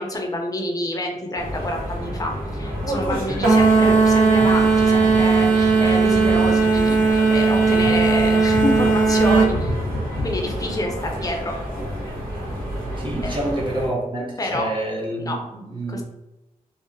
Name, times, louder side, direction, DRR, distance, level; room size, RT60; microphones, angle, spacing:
voice 1, 0.0-9.8 10.2-11.6 13.2-13.3 14.4-14.7 15.2-15.4 15.9-16.0, left 1 dB, 25° left, 1 dB, 0.5 m, -28 dB
sound 1, 1.4-13.9, equal, 85° right, 1.1 m, -30 dB
sound 2, 3.4-9.5, right 4 dB, 60° right, 0.8 m, -17 dB
sound 3, 4.6-10.7, left 1 dB, 75° left, 0.4 m, -33 dB
voice 2, 13.0-16.0, right 1 dB, 35° right, -2 dB, 0.7 m, -27 dB
2.7 x 2.0 x 2.6 m, 0.99 s
cardioid pair, 45°, 15 cm